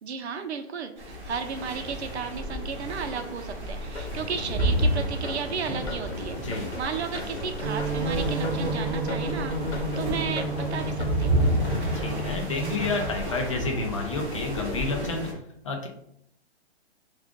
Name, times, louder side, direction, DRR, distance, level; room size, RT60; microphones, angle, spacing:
voice 1, 0.0-11.4, right 6 dB, 85° right, 7 dB, 0.7 m, -34 dB
sound 1, 1.0-15.3, right 1 dB, 10° right, 1.3 m, -30 dB
sound 2, 3.9-13.0, left 3 dB, 85° left, 0.9 m, -41 dB
sound 3, 7.6-13.1, right 2 dB, 50° right, 0.6 m, -31 dB
voice 2, 11.9-15.3 15.6-15.9, left 3 dB, 30° left, 2 dB, 0.5 m, -30 dB
4.6 x 2.4 x 3.5 m, 0.72 s
hypercardioid pair, 165°, 32 cm